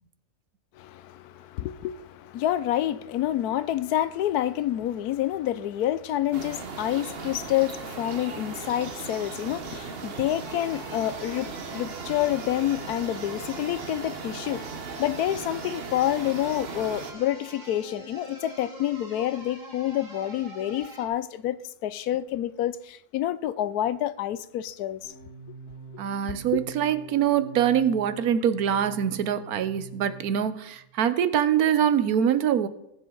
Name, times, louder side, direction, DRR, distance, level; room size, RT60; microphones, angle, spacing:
voice 1, 0.8-14.6 15.0-25.1 26.5-26.6, left 12 dB, 80° left, 1.1 m, -28 dB
sound 1, 6.3-17.1, right 5 dB, 45° right, 1.1 m, -38 dB
sound 2, 10.4-21.1, right 2 dB, 30° right, 2.4 m, -44 dB
sound 3, 25.0-30.7, right 3 dB, 50° left, 5.9 m, -44 dB
voice 2, 26.0-32.7, right 9 dB, 75° right, 1.2 m, -24 dB
19.5 x 7.4 x 3.8 m
omnidirectional pair, 1.6 m